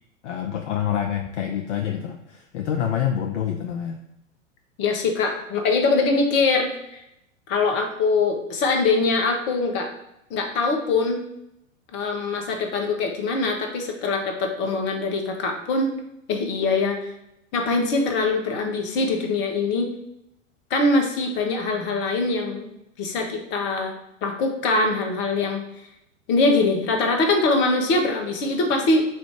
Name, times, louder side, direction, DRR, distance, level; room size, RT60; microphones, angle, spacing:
voice 1, 0.2-4.0, left 9 dB, 60° left, 3 dB, 0.6 m, -27 dB
voice 2, 4.8-7.0 7.5-9.9 10.3-11.2 11.9-15.9 16.3-17.1 17.5-19.9 20.7-22.7 23.0-23.9 24.2-25.6 26.3-29.1, left 3 dB, 30° left, 3 dB, 0.8 m, -23 dB
4.4 x 2.5 x 4.6 m, 0.82 s
figure-of-eight pair, 100°, 40 cm